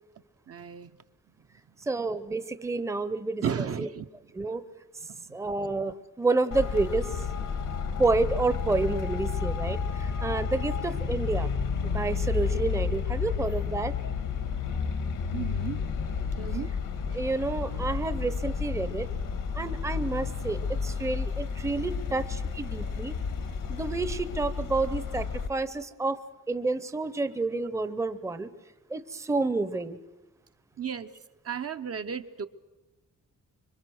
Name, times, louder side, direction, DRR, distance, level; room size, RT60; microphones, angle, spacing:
voice 1, 0.5-1.0 3.4-4.1 5.0-5.5 15.3-15.8 16.4-16.7 17.1-17.3 22.8-22.9 30.8-31.1 31.4-32.5, right 7 dB, 50° right, 8 dB, 0.7 m, -34 dB
voice 2, 1.9-3.9 4.3-4.6 5.3-7.2 8.0-11.5 11.8-13.9 17.1-19.1 19.5-23.1 23.7-26.2 26.5-28.5 28.9-30.0, right 3 dB, 10° right, 12 dB, 0.7 m, -29 dB
Traffic noise roadway noise, 6.5-25.5, left 5 dB, 85° left, 1.8 m, -31 dB
26.0 x 23.0 x 6.3 m, 1.1 s
wide cardioid pair, 150°, 31 cm